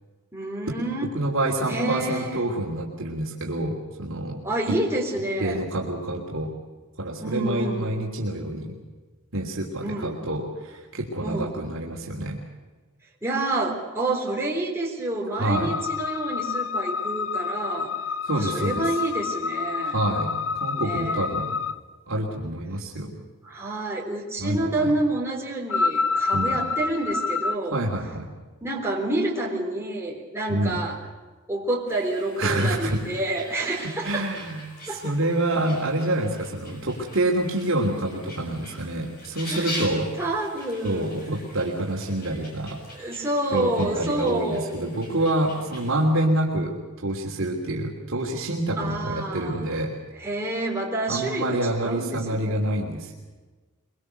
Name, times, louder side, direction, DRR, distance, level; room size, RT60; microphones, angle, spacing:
voice 1, 0.3-1.1 1.7-2.4 4.4-5.6 7.2-7.9 9.8-10.2 11.2-11.5 13.2-17.9 18.3-20.0 20.8-21.3 23.4-27.8 28.6-31.0 31.5-34.3 34.9-35.2 39.5-39.9 40.2-41.2 42.9-44.9 48.8-49.8 50.2-52.6, right 2 dB, 10° right, -2 dB, 3.7 m, -28 dB
voice 2, 1.1-4.8 5.4-6.5 7.0-8.7 9.3-12.4 15.3-15.8 18.3-18.9 19.8-21.5 22.1-23.1 24.4-24.9 26.3-26.6 27.7-28.3 30.5-30.8 32.4-33.0 34.0-40.1 40.8-42.8 43.5-49.9 51.1-53.1, right 1 dB, 65° right, -2 dB, 3.1 m, -27 dB
sound 1, 15.5-21.8 25.7-27.5, left 4 dB, 60° left, 0.8 m, -28 dB
sound 2, 31.9-46.0, left 1 dB, 40° left, 6.9 m, -42 dB
23.5 x 23.0 x 6.7 m, 1.3 s
head